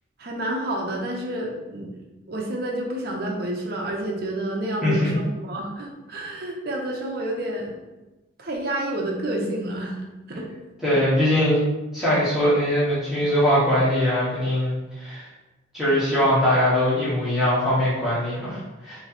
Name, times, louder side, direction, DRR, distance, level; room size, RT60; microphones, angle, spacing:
voice 1, 0.2-1.9 2.3-7.8 8.4-10.5, right 1 dB, 50° right, 0 dB, 0.7 m, -29 dB
voice 2, 4.8-5.2 10.8-11.6 11.9-15.3 15.7-19.0, left 1 dB, ahead, -12 dB, 1.1 m, -21 dB
3.1 x 2.8 x 4.1 m, 1.1 s
head